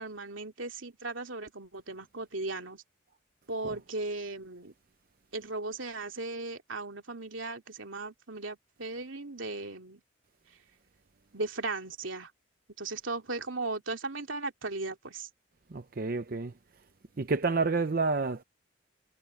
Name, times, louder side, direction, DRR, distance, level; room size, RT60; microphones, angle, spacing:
voice 1, 0.0-2.8 3.5-4.7 5.3-10.0 11.3-12.3 12.8-15.3, right 3 dB, 90° right, 2.9 m, -37 dB
voice 2, 15.7-16.5 17.2-18.4, right 3 dB, 50° right, 0.6 m, -29 dB
head